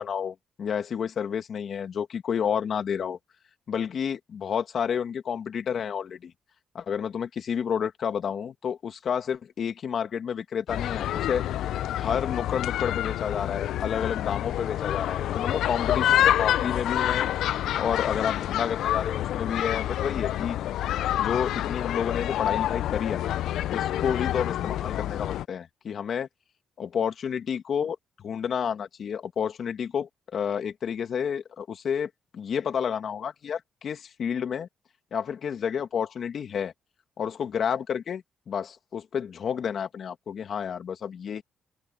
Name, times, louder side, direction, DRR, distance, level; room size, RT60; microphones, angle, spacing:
voice 1, 0.0-3.2 3.7-6.3 6.7-11.4 12.0-17.3 17.8-20.6 21.2-23.4 23.7-26.3 26.8-34.7 35.1-36.7 37.2-41.4, left 7 dB, 55° left, 2.4 m, -30 dB
sound 1, 10.7-25.5, left 12 dB, 80° left, 0.5 m, -27 dB
open air
cardioid pair, 90°, 0 cm